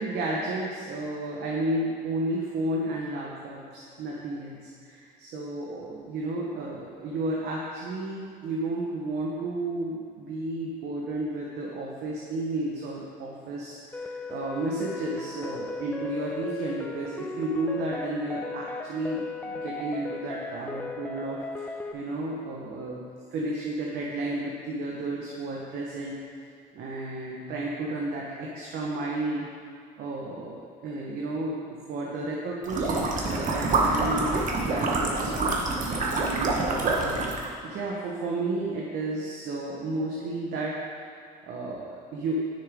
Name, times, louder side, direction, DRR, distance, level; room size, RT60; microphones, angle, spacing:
voice 1, 0.0-23.0 23.3-26.2 26.7-29.5 30.0-37.3 37.6-40.8 41.4-42.5, right 2 dB, 70° right, -3 dB, 1.2 m, -32 dB
sound 1, 13.9-21.9, left 3 dB, 10° left, 0.4 m, -37 dB
sound 2, 32.6-37.5, right 3 dB, 50° right, 1.3 m, -26 dB
10.0 x 6.5 x 3.7 m, 2.4 s
cardioid pair, 110°, 17 cm